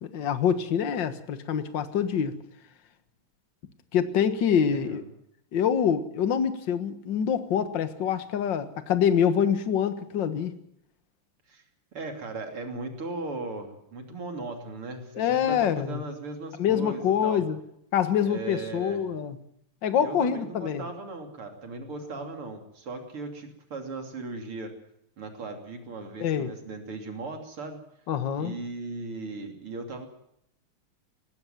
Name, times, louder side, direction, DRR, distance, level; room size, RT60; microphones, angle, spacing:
voice 1, 0.0-2.3 3.9-5.0 5.5-10.5 15.2-16.0 16.6-17.6 17.9-19.4 19.8-20.9 26.2-26.5 28.1-28.6, left 8 dB, 55° left, 10 dB, 2.0 m, -25 dB
voice 2, 4.7-5.0 11.5-11.6 11.9-17.4 18.2-19.0 20.0-24.7 25.2-27.8 28.4-30.1, right 3 dB, 75° right, 4 dB, 3.9 m, -37 dB
19.5 x 16.0 x 9.2 m, 0.74 s
omnidirectional pair, 2.4 m